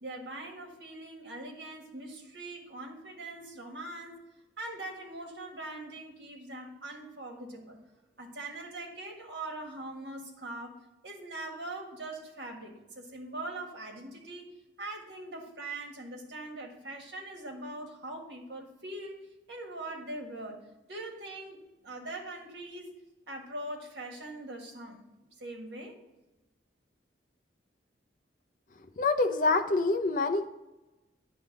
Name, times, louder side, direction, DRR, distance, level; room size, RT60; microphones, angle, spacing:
voice 1, 0.0-4.1 4.6-7.8 8.2-10.7 11.0-14.5 14.8-19.2 19.5-20.6 20.9-22.9 23.3-25.0 25.4-26.0, right 2 dB, 70° right, 1 dB, 1.6 m, -42 dB
voice 2, 29.0-30.5, left 3 dB, 45° left, 7 dB, 0.6 m, -26 dB
10.0 x 3.4 x 6.5 m, 1.0 s
head